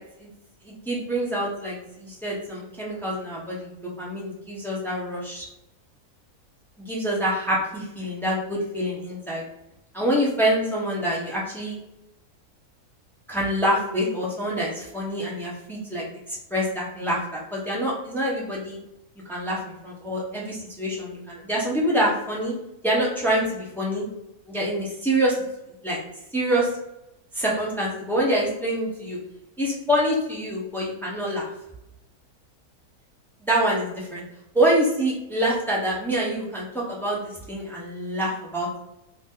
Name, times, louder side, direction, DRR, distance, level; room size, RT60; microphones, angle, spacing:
voice 1, 0.6-3.7 4.0-5.5 6.8-9.4 9.9-11.8 13.3-18.8 19.3-22.5 22.8-24.0 24.5-25.3 25.8-26.0 26.3-26.7 27.3-29.2 29.6-31.5 33.4-34.2 34.5-38.8, right 1 dB, ahead, -5 dB, 0.6 m, -26 dB
2.8 x 2.7 x 3.6 m, 0.86 s
omnidirectional pair, 1.7 m